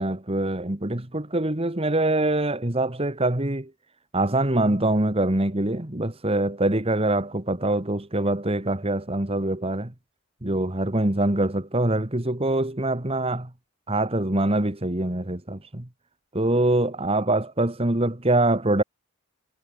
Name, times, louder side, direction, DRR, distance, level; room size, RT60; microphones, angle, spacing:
voice 1, 0.0-3.7 4.1-9.9 10.4-13.5 13.9-15.9 16.3-18.8, right 2 dB, 25° right, 1.7 m, -24 dB
head